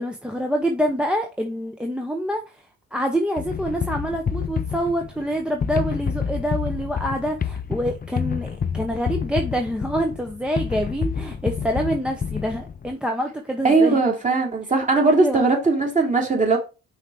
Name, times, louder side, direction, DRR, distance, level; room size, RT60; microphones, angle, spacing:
voice 1, 0.0-2.6 2.9-14.0 15.2-15.5, equal, 5° right, 1.0 m, -26 dB
sound 1, 3.4-12.9, left 7 dB, 30° left, 0.6 m, -28 dB
voice 2, 13.6-16.6, right 3 dB, 25° right, 2.9 m, -19 dB
5.7 x 4.6 x 5.0 m
cardioid pair, 90°, 30 cm